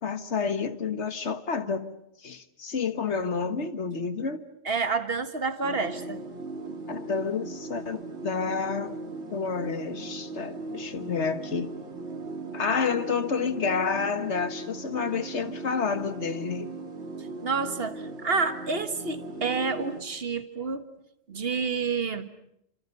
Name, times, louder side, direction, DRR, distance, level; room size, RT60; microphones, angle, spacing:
voice 1, 0.0-1.9 2.2-4.5 6.9-9.0 9.3-11.7 12.5-16.7, left 5 dB, 80° left, 10 dB, 1.7 m, -29 dB
voice 2, 4.7-6.2 17.4-20.9 21.3-22.3, right 4 dB, 60° right, 10 dB, 1.8 m, -29 dB
sound 1, 5.6-20.0, right 3 dB, 80° right, 2.9 m, -38 dB
30.0 x 26.0 x 6.8 m, 0.76 s
omnidirectional pair, 1.2 m